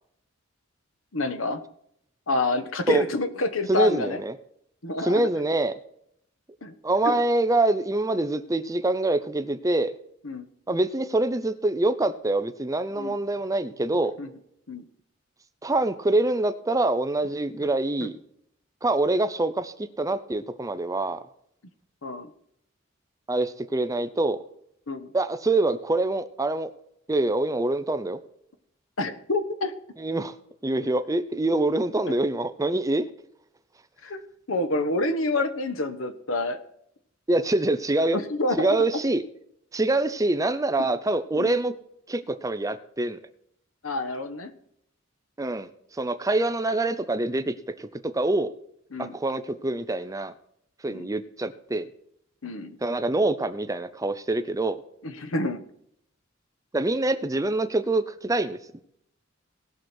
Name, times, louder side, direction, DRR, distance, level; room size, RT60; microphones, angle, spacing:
voice 1, 1.1-1.6 2.3-4.2 4.8-5.2 6.6-6.7 7.0-7.2 10.2-10.5 13.0-13.2 14.2-14.3 14.7-14.8 18.0-18.1 22.0-22.3 24.9-25.1 29.0-29.7 34.0-34.2 34.5-36.6 38.1-38.8 41.3-41.5 43.8-44.5 48.9-49.1 50.9-51.1 52.4-52.8 55.0-55.6, left 2 dB, 85° left, 10 dB, 1.2 m, -28 dB
voice 2, 3.7-4.3 5.0-5.7 6.8-10.0 10.7-14.1 15.6-18.2 18.8-21.2 23.3-24.4 25.1-26.7 27.1-28.2 30.0-30.4 30.6-33.1 37.3-38.2 38.6-39.2 39.7-41.7 42.1-43.2 45.4-45.7 46.0-48.5 49.0-50.3 50.8-51.9 52.8-54.8 56.7-58.6, right 2 dB, 15° right, 11 dB, 0.6 m, -25 dB
19.0 x 6.3 x 4.4 m, 0.71 s
head